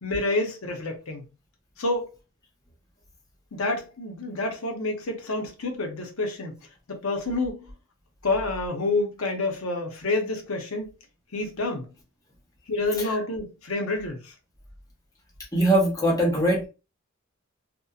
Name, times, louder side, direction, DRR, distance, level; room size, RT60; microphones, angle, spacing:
voice 1, 0.0-1.3 1.8-2.1 3.5-6.6 6.9-7.7 8.2-10.9 11.3-11.9 12.7-14.3, left 2 dB, 85° left, 0.8 m, -28 dB
voice 2, 15.5-16.7, right 1 dB, 15° left, 0.8 m, -21 dB
2.8 x 2.1 x 2.3 m
head